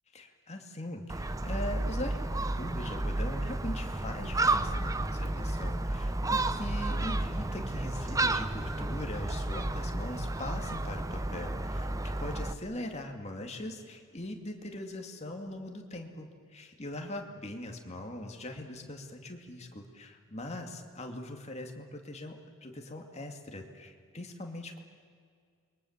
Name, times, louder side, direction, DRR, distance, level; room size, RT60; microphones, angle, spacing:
voice 1, 0.1-11.9 12.2-24.8, left 1 dB, 30° left, 3 dB, 2.5 m, -41 dB
Gull seagull, 1.1-12.5, right 2 dB, 15° right, 0.7 m, -32 dB
28.0 x 22.5 x 7.4 m, 2.2 s
head